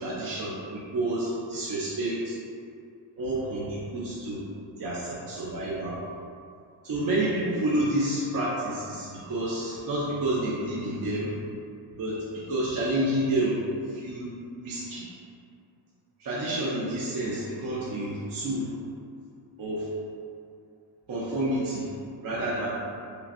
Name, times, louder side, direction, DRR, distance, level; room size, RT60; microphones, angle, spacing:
voice 1, 0.0-2.3 3.2-4.4 4.8-6.0 6.8-11.3 11.9-13.6 13.9-14.4 14.6-15.1 16.2-18.7 19.6-19.9 21.1-21.9 22.2-22.8, right 1 dB, 50° right, -7 dB, 0.5 m, -29 dB
3.2 x 2.5 x 2.4 m, 2.4 s
cardioid pair, 115°, 45 cm